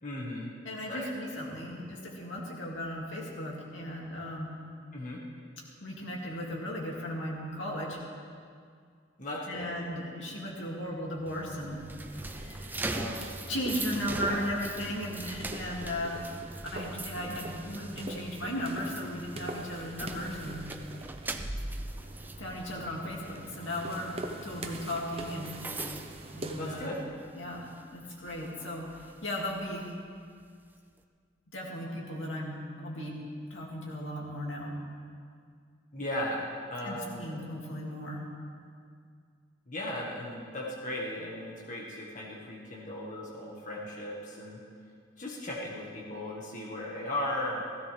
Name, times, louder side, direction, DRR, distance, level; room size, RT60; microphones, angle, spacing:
voice 1, 0.0-0.5 0.9-1.1 4.9-5.2 9.2-9.7 12.9-13.3 14.3-14.4 26.6-27.0 35.9-37.4 39.7-44.6 45.2-47.6, left 1 dB, 45° left, -4 dB, 1.6 m, -37 dB
voice 2, 0.6-4.5 5.8-8.0 9.5-11.8 12.1-12.9 13.5-16.4 16.6-20.6 22.4-24.1 24.4-25.6 26.3-26.9 27.3-29.9 31.5-33.2 33.5-34.7 36.8-38.2, equal, 90° left, -3 dB, 2.6 m, -36 dB
sound 1, 11.3-27.2 27.5-27.8 28.3-29.9, right 2 dB, 10° right, 0.5 m, -41 dB
sound 2, 12.0-26.9, right 1 dB, 30° right, 0.8 m, -43 dB
16.5 x 15.5 x 3.5 m, 2.2 s
head